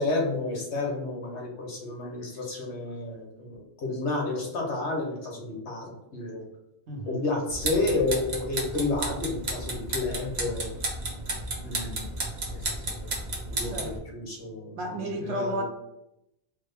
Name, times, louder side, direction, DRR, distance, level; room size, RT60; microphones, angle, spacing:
voice 1, 0.0-6.4 7.0-10.7 11.6-12.1 12.5-13.1 13.4-15.6, left 2 dB, 80° left, 0 dB, 1.2 m, -31 dB
voice 2, 6.9-7.2 13.6-14.0 14.8-15.6, right 1 dB, 80° right, 3 dB, 1.0 m, -32 dB
sound 1, 7.5-14.0, right 2 dB, 45° right, 0.7 m, -33 dB
3.5 x 2.2 x 3.3 m, 0.85 s
omnidirectional pair, 1.1 m